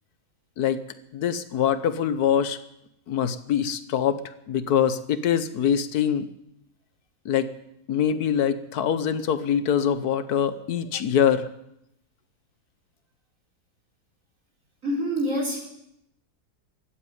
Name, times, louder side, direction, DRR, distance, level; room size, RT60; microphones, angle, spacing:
voice 1, 1.1-2.6 3.1-4.2 4.5-6.3 7.2-7.5 7.9-11.5, left 8 dB, 85° left, 13 dB, 1.4 m, -24 dB
voice 2, 14.8-15.6, equal, 60° right, -2 dB, 4.6 m, -26 dB
15.5 x 8.8 x 9.5 m, 0.80 s
omnidirectional pair, 1.6 m